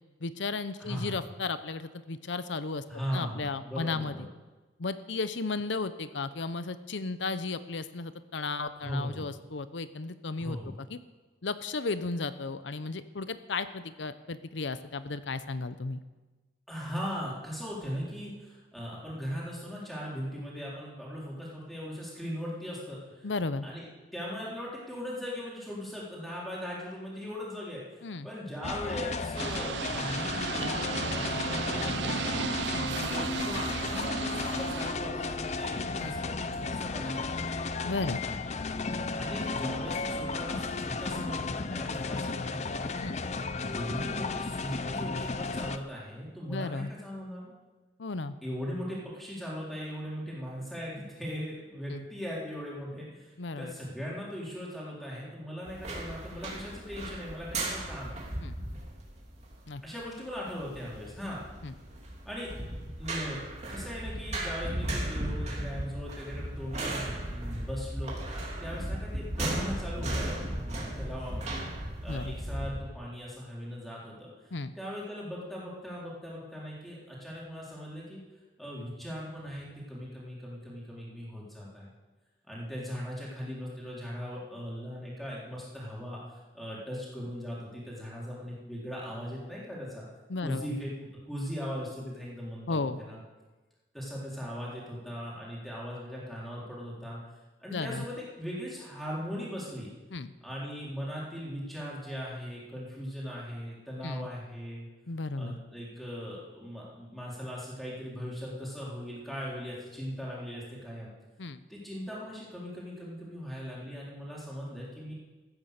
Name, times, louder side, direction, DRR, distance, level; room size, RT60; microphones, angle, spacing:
voice 1, 0.2-2.8 3.1-4.3 4.8-10.6 10.9-11.0 11.4-16.0 23.2-23.7 28.0-28.3 32.7-32.9 36.0-36.2 37.8-38.2 43.0-43.2 46.5-46.9 48.0-48.3 51.9-52.0 53.4-53.7 58.4-58.6 59.7-59.8 61.6-61.7 72.1-72.4 74.5-74.7 90.3-90.7 92.7-93.0 97.7-98.0 100.1-100.3 104.0-104.3 105.1-105.6 111.4-111.6, left 3 dB, 85° left, 13 dB, 0.8 m, -34 dB
voice 2, 0.8-1.3 2.9-4.3 8.7-9.3 10.4-10.7 16.7-23.3 23.6-23.8 24.1-37.4 38.9-42.8 43.6-47.5 48.4-58.2 59.8-61.4 62.3-62.5 63.0-63.4 63.7-71.6 72.0-74.3 74.8-78.2 78.6-81.9 82.5-90.0 90.4-90.9 91.3-93.2 93.9-97.2 97.6-99.9 100.4-104.9 105.4-111.1 111.7-115.1, equal, ahead, -6 dB, 3.8 m, -39 dB
sound 1, 28.6-45.8, left 4 dB, 40° left, 0.6 m, -34 dB
sound 2, 29.4-34.9, right 6 dB, 75° right, 0.6 m, -34 dB
sound 3, 55.7-72.7, right 1 dB, 40° right, 3.0 m, -36 dB
15.0 x 9.6 x 6.7 m, 1.2 s
head